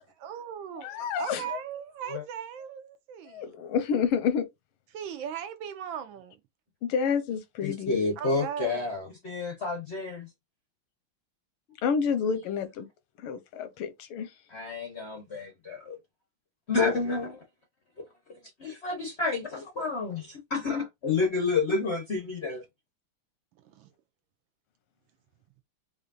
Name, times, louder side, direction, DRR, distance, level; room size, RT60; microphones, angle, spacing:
voice 1, 0.2-0.9 1.2-3.4 4.9-6.4 8.2-8.9 23.6-23.9, right 9 dB, 75° right, 1.2 m, -38 dB
voice 2, 0.8-1.6 3.3-4.5 6.8-8.0 11.8-12.9 13.2-14.3, left 6 dB, 85° left, 1.6 m, -29 dB
voice 3, 7.6-10.3 14.5-16.0 16.7-17.4 18.6-22.6, left 4 dB, 60° left, 0.6 m, -29 dB
4.9 x 2.6 x 2.5 m
omnidirectional pair, 2.3 m